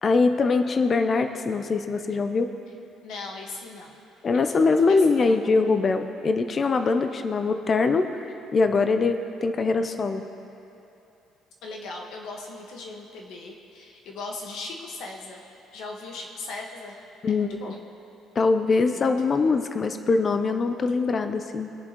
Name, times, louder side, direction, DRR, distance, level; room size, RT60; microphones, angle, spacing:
voice 1, 0.0-2.5 4.2-8.2 8.5-10.2 17.2-17.6 18.4-21.7, left 4 dB, 25° left, 8 dB, 0.4 m, -23 dB
voice 2, 3.0-3.9 4.3-4.6 4.9-5.5 11.6-15.4 15.7-17.0 17.3-17.8 18.9-19.5, left 3 dB, 60° left, 1 dB, 1.4 m, -39 dB
20.5 x 7.1 x 3.0 m, 2.9 s
cardioid pair, 175°, 0 cm